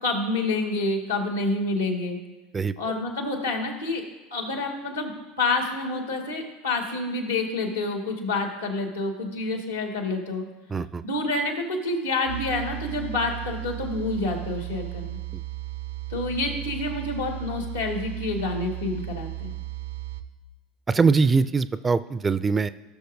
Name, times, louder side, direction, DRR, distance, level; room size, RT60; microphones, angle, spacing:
voice 1, 0.0-2.2 2.8-4.0 4.3-5.1 5.4-10.4 11.0-15.2 16.1-19.5, left 2 dB, 85° left, 2 dB, 1.9 m, -28 dB
voice 2, 10.7-11.0 15.3-15.4 20.9-22.7, right 4 dB, 20° right, 15 dB, 0.4 m, -22 dB
sound 1, 12.3-20.2, right 17 dB, 70° right, 0.5 m, -35 dB
17.0 x 6.5 x 2.7 m, 1.2 s
figure-of-eight pair, 75°, 0 cm